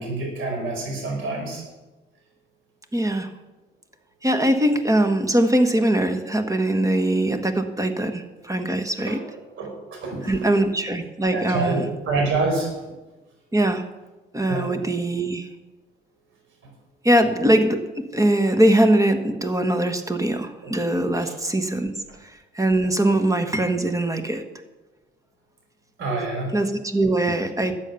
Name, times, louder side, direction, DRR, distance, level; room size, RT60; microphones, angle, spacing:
voice 1, 0.0-1.6 9.6-10.4 11.3-12.7 14.5-14.7 20.6-20.7 21.1-21.4 26.0-26.5, right 3 dB, 85° right, 1 dB, 5.0 m, -27 dB
voice 2, 2.9-3.3 4.2-9.2 10.2-11.9 13.5-13.8 14.3-15.5 17.0-17.8 18.1-21.9 22.2-24.4 26.5-27.7, right 1 dB, 15° right, 7 dB, 1.5 m, -21 dB
13.0 x 8.5 x 7.0 m, 1.1 s
cardioid pair, 90°, 20 cm